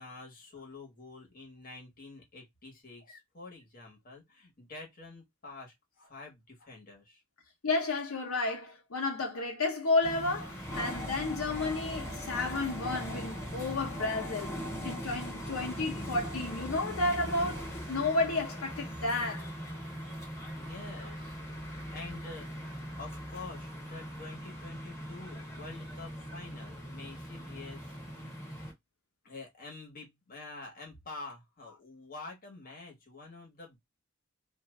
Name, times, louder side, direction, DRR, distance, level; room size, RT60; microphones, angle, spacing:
voice 1, 0.0-7.2 19.4-22.5 23.0-28.4 29.2-33.8, left 3 dB, 40° left, 1.2 m, -48 dB
voice 2, 7.6-14.6 14.8-19.5, left 2 dB, 90° left, 0.8 m, -32 dB
sound 1, 10.0-28.7, equal, 15° left, 1.3 m, -40 dB
2.6 x 2.5 x 3.1 m
head